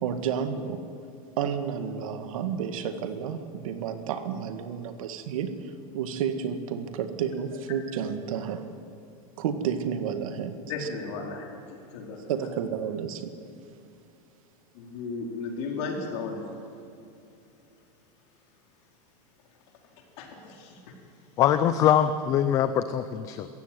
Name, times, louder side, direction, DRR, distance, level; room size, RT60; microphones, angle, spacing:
voice 1, 0.0-0.8 1.4-8.6 9.4-10.6 12.3-13.3, right 7 dB, 60° right, 8 dB, 1.9 m, -31 dB
voice 2, 10.7-12.5 14.7-16.5 20.2-20.8, left 4 dB, 45° left, 1 dB, 4.4 m, -35 dB
voice 3, 21.4-23.5, left 10 dB, 15° left, 11 dB, 0.4 m, -23 dB
22.5 x 15.5 x 9.3 m, 2.6 s
supercardioid pair, 175°, 20 cm